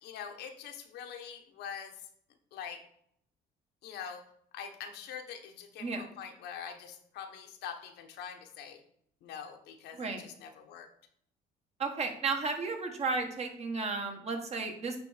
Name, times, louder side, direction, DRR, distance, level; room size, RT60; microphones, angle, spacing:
voice 1, 0.0-1.9 2.5-2.8 3.8-4.2 4.5-8.8 9.2-10.9, left 7 dB, 80° left, 4 dB, 1.2 m, -44 dB
voice 2, 9.9-10.3 11.8-15.0, right 4 dB, 40° right, 4 dB, 1.5 m, -33 dB
9.0 x 3.4 x 5.0 m, 0.68 s
cardioid pair, 110°, 17 cm